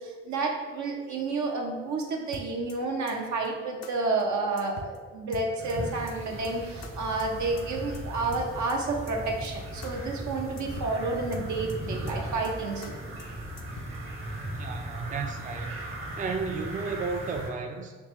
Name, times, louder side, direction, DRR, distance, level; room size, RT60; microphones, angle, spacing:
voice 1, 0.0-13.0, right 3 dB, 70° right, 1 dB, 0.7 m, -30 dB
sound 1, 2.3-2.8 3.1-3.2 3.4-3.5 3.8-3.9 4.2-4.3 4.6-5.0 5.3-5.8 6.1-6.2 6.4-6.5 6.8-6.9 7.2-7.3 7.6-8.0 8.3-8.8 9.1-9.2 9.4-9.5 9.8-9.9 10.2-10.3 10.6-11.0 11.3-11.8 12.1-12.2 12.4-12.5 12.8-12.9 13.2-13.3 13.6-14.0, left 3 dB, 55° left, 0.5 m, -43 dB
sound 2, 5.6-17.5, right 1 dB, 40° right, 0.9 m, -38 dB
voice 2, 14.5-15.8 16.2-18.0, right 4 dB, 25° right, 4 dB, 0.4 m, -33 dB
3.5 x 2.9 x 3.1 m, 1.4 s
hypercardioid pair, 40°, 31 cm